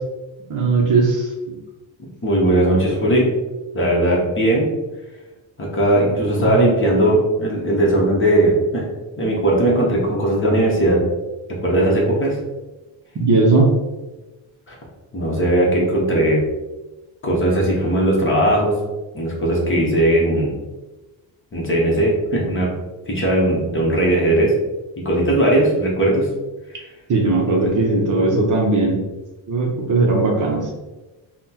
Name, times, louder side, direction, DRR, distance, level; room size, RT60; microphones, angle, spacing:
voice 1, 0.5-1.3 6.4-6.6 13.2-13.7 27.1-29.0 29.5-30.6, right 3 dB, 40° right, -1 dB, 0.6 m, -18 dB
voice 2, 2.2-3.3 3.7-4.7 5.6-8.9 9.2-11.0 11.6-12.4 14.7-14.8 15.1-16.4 17.2-18.8 19.1-20.6 21.5-22.7 23.1-24.5 25.0-26.3, right 1 dB, 25° left, -3 dB, 0.8 m, -18 dB
5.6 x 2.1 x 2.8 m, 1.1 s
wide cardioid pair, 180°, 48 cm